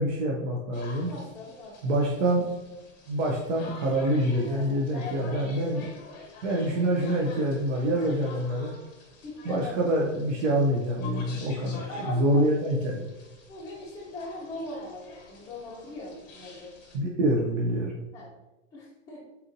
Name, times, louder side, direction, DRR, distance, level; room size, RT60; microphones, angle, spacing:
voice 1, 0.0-1.1 1.8-2.4 3.1-5.9 6.4-8.7 9.4-13.1 16.9-18.0, right 1 dB, 75° right, -1 dB, 0.7 m, -26 dB
sound 1, 0.7-17.0, left 3 dB, 30° left, 1.0 m, -48 dB
voice 2, 1.1-1.9 4.4-5.4 9.2-9.7 11.8-12.4 13.5-16.7 18.1-18.3 18.7-19.2, left 2 dB, 10° left, -9 dB, 0.8 m, -40 dB
4.1 x 2.6 x 2.7 m, 1.0 s
supercardioid pair, 170°, 38 cm